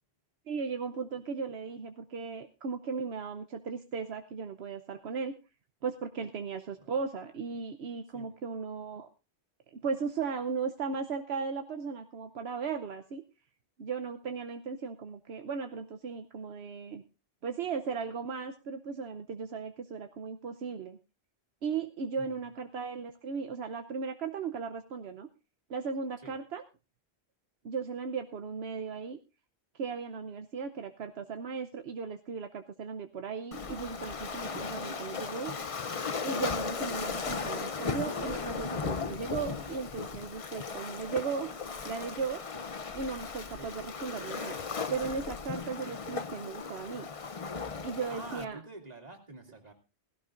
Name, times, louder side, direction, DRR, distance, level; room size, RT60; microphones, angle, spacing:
voice 1, 0.5-5.3 5.8-9.1 9.7-13.2 13.8-17.0 17.4-21.0 21.6-25.3 25.7-26.6 27.6-29.2 29.8-35.5 36.2-41.5 41.8-42.4 42.9-44.6 44.9-47.1 47.8-48.6, right 5 dB, 75° right, 7 dB, 1.1 m, -36 dB
Waves surf, 33.5-48.4, left 5 dB, 35° left, 0.7 m, -37 dB
voice 2, 48.1-49.7, right 2 dB, 40° right, 2 dB, 2.8 m, -47 dB
17.0 x 16.5 x 2.5 m, 0.31 s
omnidirectional pair, 1.1 m